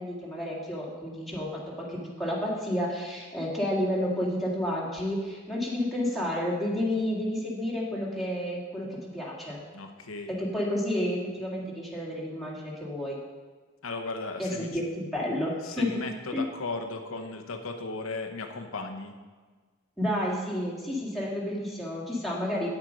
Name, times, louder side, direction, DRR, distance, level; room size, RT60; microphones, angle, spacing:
voice 1, 0.0-9.6 10.3-13.2 14.4-16.0 16.3-16.4 20.0-22.7, left 1 dB, ahead, -5 dB, 2.1 m, -30 dB
voice 2, 9.7-10.3 13.8-14.7 15.6-19.1, left 3 dB, 80° left, 5 dB, 0.9 m, -36 dB
8.8 x 7.6 x 5.2 m, 1.4 s
head